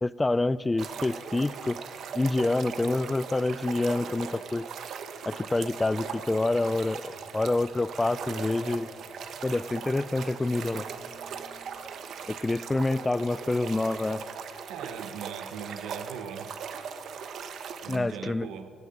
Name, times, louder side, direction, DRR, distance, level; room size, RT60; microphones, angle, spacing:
voice 1, 0.0-1.8 2.1-4.7 5.3-8.9 9.4-10.9 12.3-14.2 17.9-18.5, left 2 dB, 15° left, 18 dB, 0.3 m, -27 dB
sound 1, 0.8-18.0, right 6 dB, 60° right, 1.0 m, -39 dB
sound 2, 6.6-15.0, right 3 dB, 30° right, 2.1 m, -60 dB
voice 2, 14.7-16.5 17.8-18.7, right 7 dB, 90° right, 10 dB, 1.0 m, -39 dB
15.5 x 9.4 x 9.2 m, 2.5 s
cardioid pair, 135°, 0 cm